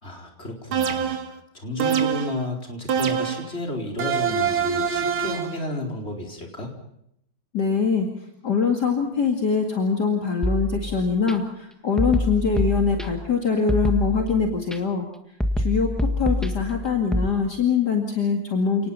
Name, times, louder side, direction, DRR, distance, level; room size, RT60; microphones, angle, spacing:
voice 1, 0.0-1.1 1.5-6.7, left 1 dB, 30° left, 2 dB, 4.7 m, -32 dB
sound 1, 0.7-1.4 1.8-2.4 2.9-3.5 4.0-5.6, right 7 dB, 90° right, 2.5 m, -24 dB
voice 2, 7.5-8.1 8.4-15.1 15.6-18.9, left 5 dB, 55° left, 3 dB, 2.8 m, -23 dB
sound 2, 10.4-11.3 12.0-13.3 13.7-14.8 15.4-17.3, left 1 dB, ahead, 1.3 m, -26 dB
30.0 x 19.0 x 5.6 m, 0.74 s
omnidirectional pair, 2.2 m